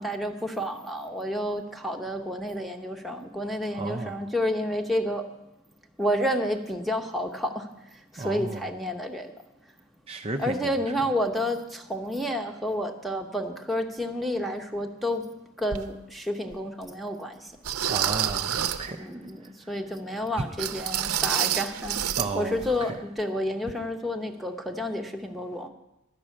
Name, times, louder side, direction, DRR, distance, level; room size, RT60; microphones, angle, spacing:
voice 1, 0.0-5.2 6.0-7.7 8.1-9.3 10.4-15.2 15.6-17.5 19.0-19.4 19.7-22.0 22.3-25.7, equal, ahead, 4 dB, 0.9 m, -30 dB
voice 2, 3.7-4.2 8.2-8.7 10.1-11.1 17.9-19.1 19.4-19.7 20.4-20.5 22.2-22.9, right 3 dB, 25° right, 3 dB, 0.5 m, -34 dB
sound 1, 15.7-15.8 16.5-16.6 17.6-18.9 20.6-22.3 22.6-22.7 23.2-23.3, right 10 dB, 80° right, 0.6 m, -28 dB
11.5 x 6.2 x 8.4 m, 0.93 s
head